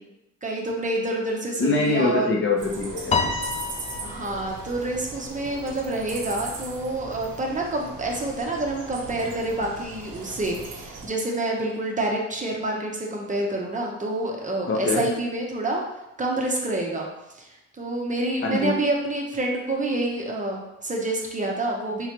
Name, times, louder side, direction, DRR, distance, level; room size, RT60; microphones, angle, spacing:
voice 1, 0.4-2.3 4.0-15.8 16.2-17.1 17.4-17.5 17.7-22.1, right 2 dB, 25° right, -1 dB, 0.7 m, -27 dB
voice 2, 1.6-3.5 14.7-15.0 18.4-18.7, left 3 dB, 40° left, 0 dB, 0.8 m, -24 dB
sound 1, 2.6-11.1, right 3 dB, 85° right, 0.8 m, -39 dB
Piano, 3.1-5.6, left 4 dB, 25° left, 0.3 m, -29 dB
3.7 x 3.1 x 2.9 m, 0.91 s
cardioid pair, 90°, 30 cm